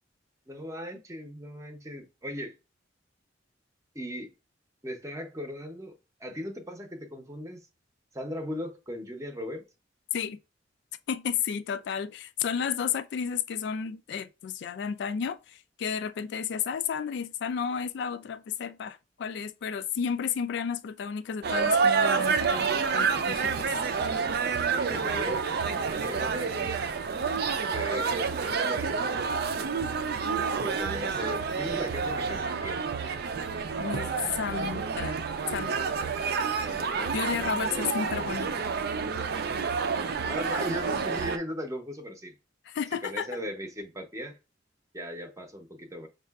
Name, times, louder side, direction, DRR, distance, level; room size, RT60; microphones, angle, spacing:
voice 1, 0.5-2.5 3.9-4.3 4.8-5.9 6.2-7.7 8.1-9.6 24.7-25.4 26.0-26.9 27.7-29.2 30.6-32.8 36.6-37.2 37.6-37.9 40.2-42.4 43.0-44.4 44.9-46.1, equal, 15° right, 0.7 m, -38 dB
voice 2, 11.1-23.7 33.8-35.2 35.5-35.8 37.1-38.7 42.7-43.3, left 7 dB, 65° left, 0.3 m, -32 dB
sound 1, 21.4-41.4, right 5 dB, 60° right, 0.4 m, -29 dB
5.3 x 2.4 x 2.3 m
head